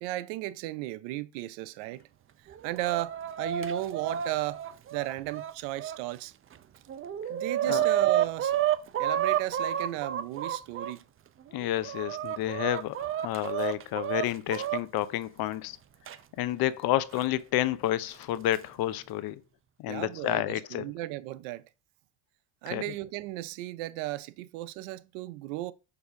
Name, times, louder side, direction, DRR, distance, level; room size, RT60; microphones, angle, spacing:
voice 1, 0.0-2.0 2.6-4.6 4.9-6.3 7.3-8.6 9.0-11.0 19.9-21.6 22.6-25.7, right 17 dB, 85° right, 0.6 m, -35 dB
Chicken rooster, 2.5-6.0 6.5-6.6 6.9-10.9 11.5-14.8 16.1-16.2 17.2-17.3 18.2-18.6, right 11 dB, 30° right, 0.5 m, -30 dB
voice 2, 11.5-15.8 16.4-19.4 19.8-20.9 22.7-22.9, left 14 dB, 55° left, 0.6 m, -30 dB
6.8 x 2.6 x 5.6 m
supercardioid pair, 105°, 42 cm